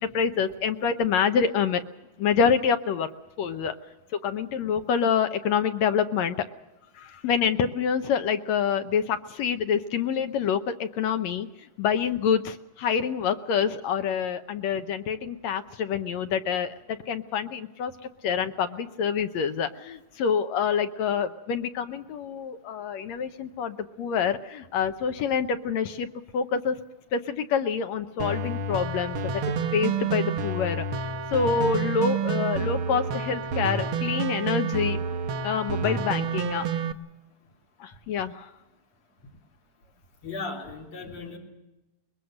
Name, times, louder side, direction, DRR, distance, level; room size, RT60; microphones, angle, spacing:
voice 1, 0.0-1.8 2.2-3.1 3.4-3.7 4.2-6.4 7.0-11.5 11.8-17.9 18.2-26.1 26.3-26.8 27.1-29.3 29.7-31.0 31.3-35.0 35.4-36.7 37.8-38.5, left 7 dB, 70° left, 8 dB, 1.9 m, -26 dB
sound 1, 28.2-36.9, right 5 dB, 75° right, 1.2 m, -29 dB
voice 2, 40.2-41.4, left 3 dB, 50° left, 0 dB, 4.9 m, -36 dB
22.5 x 21.5 x 6.4 m, 0.97 s
omnidirectional pair, 3.7 m